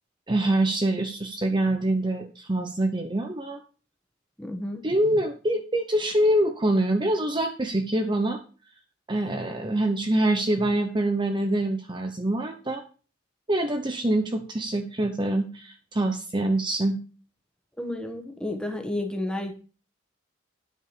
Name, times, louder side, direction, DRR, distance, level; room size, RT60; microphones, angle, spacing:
voice 1, 0.3-3.6 4.8-8.4 9.1-12.8 13.5-17.0, right 1 dB, 25° right, 5 dB, 0.8 m, -25 dB
voice 2, 4.4-4.8 17.8-19.5, left 1 dB, 5° left, 4 dB, 1.5 m, -31 dB
9.8 x 5.4 x 6.8 m, 0.37 s
head